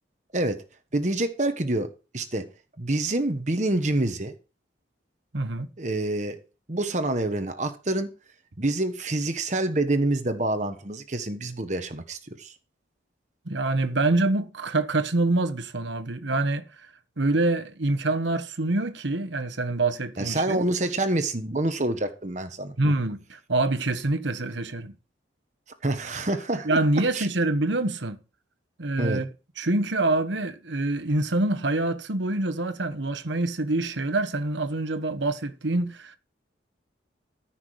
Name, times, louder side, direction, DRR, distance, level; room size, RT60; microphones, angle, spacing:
voice 1, 0.9-2.5 2.8-4.3 5.8-6.4 6.7-8.1 8.6-12.5 20.2-22.9 25.8-26.8 27.1-27.3 29.0-29.2, right 2 dB, 40° right, 1.2 m, -27 dB
voice 2, 5.3-5.7 13.5-16.6 17.2-20.6 22.8-24.9 26.6-28.2 28.8-29.3 29.6-36.2, right 2 dB, 80° right, 1.2 m, -26 dB
14.5 x 6.0 x 4.8 m
head